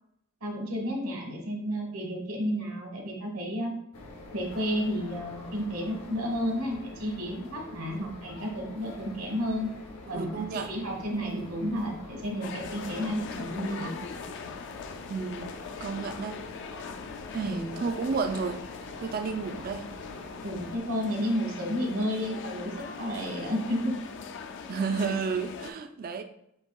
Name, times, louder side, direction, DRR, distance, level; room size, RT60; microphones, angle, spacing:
voice 1, 0.4-3.7 4.3-9.7 10.1-14.0 17.4-17.8 20.4-23.9, equal, 65° right, 1.3 m, -32 dB
sound 1, 3.9-20.8, left 2 dB, 90° left, 0.7 m, -46 dB
voice 2, 10.1-10.7 15.1-16.4 17.3-18.6 19.0-19.9 24.7-26.2, right 5 dB, 40° right, 0.4 m, -32 dB
sound 2, 12.4-25.7, left 5 dB, 55° left, 0.3 m, -41 dB
7.8 x 2.7 x 2.3 m
head